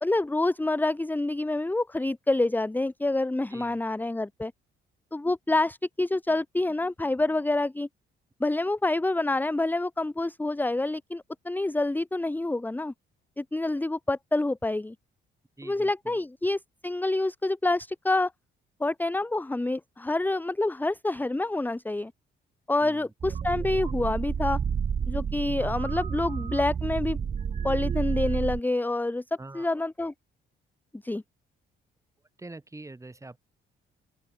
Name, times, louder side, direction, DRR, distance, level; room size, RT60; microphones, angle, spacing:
voice 1, 0.0-4.5 5.1-7.9 8.4-12.9 13.4-14.9 15.6-18.3 18.8-22.1 22.7-24.6 25.1-27.2 27.6-29.2 29.5-30.1 31.0-31.2, left 2 dB, 10° left, 0.9 m, -27 dB
voice 2, 3.5-3.8 15.6-16.2 22.8-23.6 29.4-29.7 32.4-33.4, right 2 dB, 15° right, 2.9 m, -45 dB
sound 1, 23.2-28.6, right 7 dB, 35° right, 0.7 m, -30 dB
open air
cardioid pair, 90°, 20 cm